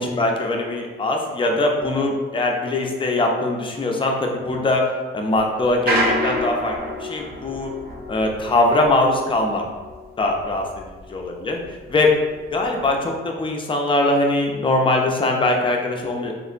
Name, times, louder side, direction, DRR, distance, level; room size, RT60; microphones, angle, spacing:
voice 1, 0.0-7.7 8.1-9.6 10.2-10.6 11.1-12.1 12.5-16.3, left 2 dB, 25° left, 1 dB, 0.5 m, -21 dB
sound 1, 5.7-11.3 11.6-12.8, equal, 50° right, 0.6 m, -27 dB
3.6 x 2.0 x 2.4 m, 1.4 s
cardioid pair, 90°, 20 cm